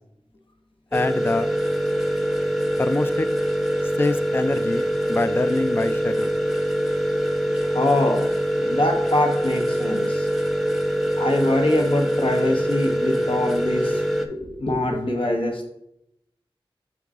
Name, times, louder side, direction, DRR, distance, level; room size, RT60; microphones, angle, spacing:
voice 1, 0.9-1.5 2.8-3.3 4.0-6.3, left 2 dB, 25° left, 11 dB, 0.3 m, -25 dB
sound 1, 0.9-14.3, equal, ahead, 0.7 m, -24 dB
voice 2, 7.7-8.3 8.6-10.3 11.2-14.0 14.3-15.7, left 1 dB, 70° left, 3 dB, 1.0 m, -23 dB
7.0 x 3.8 x 3.5 m, 0.79 s
wide cardioid pair, 45°, 9 cm